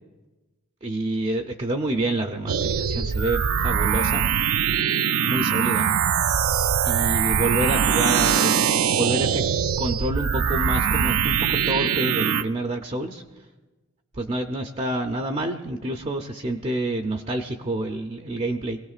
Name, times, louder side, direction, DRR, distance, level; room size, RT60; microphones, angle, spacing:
voice 1, 0.8-4.3 5.2-5.9 6.8-8.7 8.9-9.4 9.8-13.2 14.1-18.8, right 1 dB, 30° right, 4 dB, 0.6 m, -28 dB
sound 1, 2.5-12.4, right 8 dB, 80° right, 0.4 m, -22 dB
23.0 x 17.5 x 2.4 m, 1.2 s
head